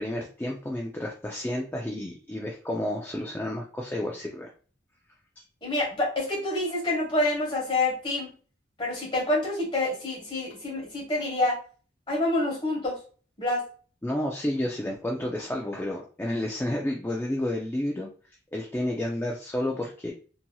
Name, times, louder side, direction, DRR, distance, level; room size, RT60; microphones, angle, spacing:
voice 1, 0.0-4.5 14.0-18.1 18.5-20.1, left 1 dB, 10° left, -1 dB, 0.3 m, -31 dB
voice 2, 5.6-8.3 8.8-11.6 12.1-13.0 13.4-13.6, left 2 dB, 25° left, -3 dB, 1.2 m, -27 dB
2.9 x 2.7 x 2.2 m, 0.39 s
head